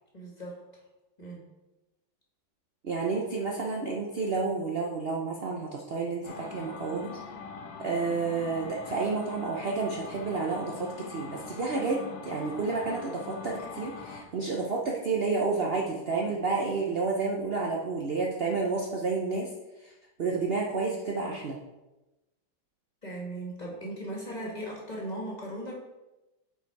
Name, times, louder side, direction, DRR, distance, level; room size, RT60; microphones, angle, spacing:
voice 1, 0.1-0.6 1.2-1.4 23.0-25.7, right 1 dB, 20° left, -3 dB, 1.9 m, -37 dB
voice 2, 2.8-7.1 7.8-19.5 19.8-19.9 20.2-21.6, right 4 dB, 70° right, -1 dB, 0.5 m, -30 dB
sound 1, 6.2-14.2, left 5 dB, 80° left, 1.8 m, -42 dB
8.1 x 4.8 x 4.6 m, 1.0 s
omnidirectional pair, 2.1 m